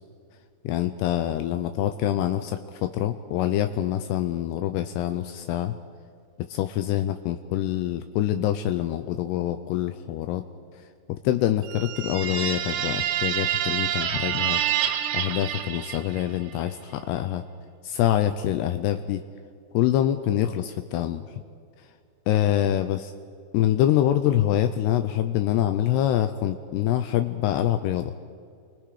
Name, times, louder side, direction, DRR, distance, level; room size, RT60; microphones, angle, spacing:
voice 1, 0.6-5.7 6.5-10.4 11.1-14.6 15.1-17.4 17.8-19.2 19.7-21.2 22.3-23.1 23.5-28.1, left 12 dB, 90° left, 8 dB, 2.4 m, -25 dB
sound 1, 11.6-16.4, right 10 dB, 70° right, 2.8 m, -27 dB
29.0 x 24.5 x 5.0 m, 2.3 s
omnidirectional pair, 5.6 m